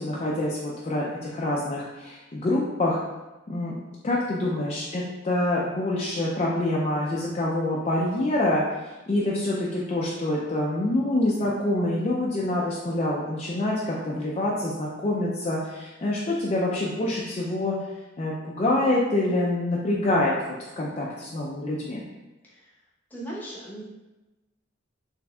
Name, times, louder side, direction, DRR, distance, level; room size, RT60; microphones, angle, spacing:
voice 1, 0.0-3.0 3.5-3.7 4.0-8.6 9.1-17.8 18.2-20.3 20.8-22.1, left 1 dB, 35° left, -5 dB, 0.4 m, -26 dB
voice 2, 23.1-23.8, right 1 dB, 10° left, -7 dB, 0.9 m, -38 dB
4.2 x 3.2 x 2.3 m, 1.1 s
head